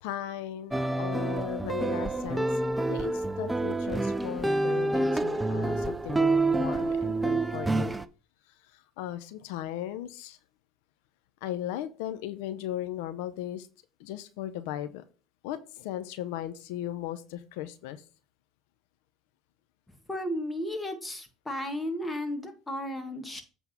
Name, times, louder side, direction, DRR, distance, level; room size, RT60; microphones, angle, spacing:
voice 1, 0.0-7.9 8.6-10.4 11.4-13.7 14.0-15.0 15.4-18.0, left 12 dB, 85° left, 11 dB, 0.6 m, -37 dB
sound 1, 0.7-8.0, right 2 dB, 10° right, 0.5 m, -28 dB
voice 2, 20.1-23.4, left 1 dB, 10° left, 5 dB, 1.8 m, -34 dB
8.1 x 3.6 x 5.8 m, 0.35 s
supercardioid pair, 100°, 0 cm